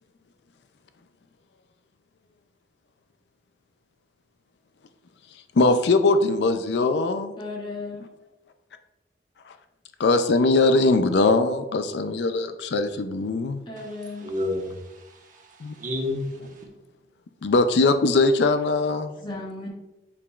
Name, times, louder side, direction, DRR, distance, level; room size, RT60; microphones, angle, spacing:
voice 1, 5.6-7.4 10.0-13.6 15.6-15.7 17.4-19.1, left 3 dB, 70° left, 9 dB, 0.4 m, -21 dB
voice 2, 7.4-8.0 13.7-14.3 19.2-19.7, left 2 dB, 25° left, -3 dB, 1.6 m, -35 dB
voice 3, 13.8-16.7, left 1 dB, 45° right, 0 dB, 1.2 m, -32 dB
8.4 x 4.9 x 2.4 m, 1.1 s
head